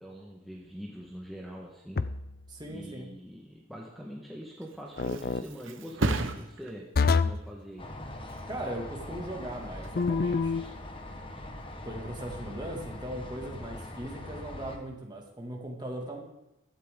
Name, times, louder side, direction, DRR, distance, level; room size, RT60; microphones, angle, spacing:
voice 1, 0.0-2.1 2.7-7.8, equal, ahead, -3 dB, 1.4 m, -43 dB
sound 1, 2.0-2.4 5.0-5.4 7.0-7.5 10.0-10.7, left 4 dB, 45° left, 0.4 m, -26 dB
voice 2, 2.5-3.1 8.5-10.6 11.8-16.2, right 1 dB, 20° right, 0 dB, 2.2 m, -39 dB
Thump thud, 4.4-11.9 12.3-12.7, right 2 dB, 80° right, 1.0 m, -38 dB
sound 2, 7.8-14.8, left 1 dB, 25° left, 1.3 m, -42 dB
15.5 x 13.0 x 3.8 m, 0.90 s
head